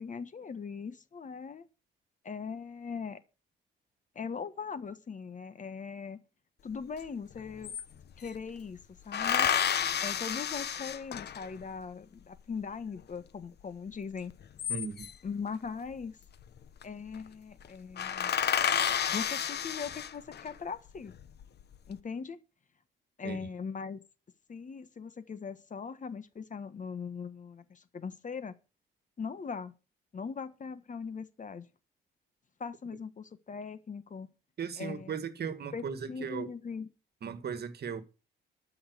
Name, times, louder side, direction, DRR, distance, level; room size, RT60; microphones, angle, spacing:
voice 1, 0.0-1.6 2.2-3.2 4.1-6.2 6.6-7.8 8.2-8.8 9.0-9.5 10.0-14.3 15.2-16.2 16.8-18.3 19.1-21.1 21.9-22.4 23.2-24.0 24.5-28.5 29.2-29.7 30.1-31.7 32.6-34.3 34.8-35.1 35.7-36.9, left 5 dB, 40° left, 1.4 m, -40 dB
sound 1, 7.0-7.1 7.3-8.4 9.1-11.6 14.3-15.3 16.4-16.8 17.1-17.3 17.6-17.7 18.0-20.5 21.1-21.7, left 8 dB, 55° left, 1.1 m, -31 dB
voice 2, 14.7-15.1 23.2-23.4 34.6-36.5 37.2-38.0, right 6 dB, 55° right, 1.8 m, -37 dB
13.0 x 5.8 x 7.9 m
cardioid pair, 90°, 20 cm